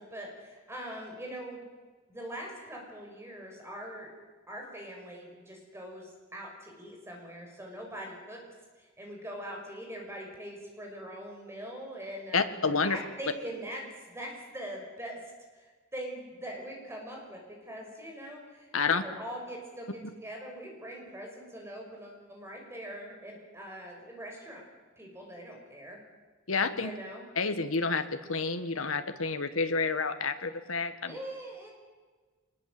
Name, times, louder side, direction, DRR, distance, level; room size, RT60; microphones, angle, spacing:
voice 1, 0.0-1.7 2.1-4.1 4.5-8.4 8.8-12.5 12.9-15.2 15.5-24.6 25.0-26.0 26.8-27.2 31.1-31.7, right 1 dB, 15° right, 0 dB, 6.1 m, -42 dB
voice 2, 12.3-13.0 18.7-19.0 26.5-26.9 27.4-31.2, left 4 dB, 85° left, 9 dB, 1.7 m, -29 dB
23.5 x 21.5 x 7.9 m, 1.4 s
head